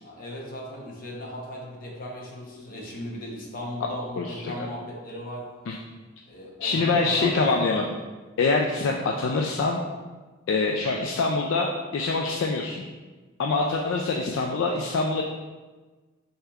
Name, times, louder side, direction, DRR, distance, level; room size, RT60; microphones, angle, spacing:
voice 1, 0.0-5.5 6.3-7.7, equal, 40° left, -2 dB, 0.8 m, -37 dB
voice 2, 4.2-4.5 5.7-5.8 6.6-7.9 8.4-9.8 10.5-12.8 13.4-15.2, left 3 dB, 60° left, 0 dB, 0.3 m, -25 dB
6.5 x 2.9 x 2.4 m, 1.3 s
head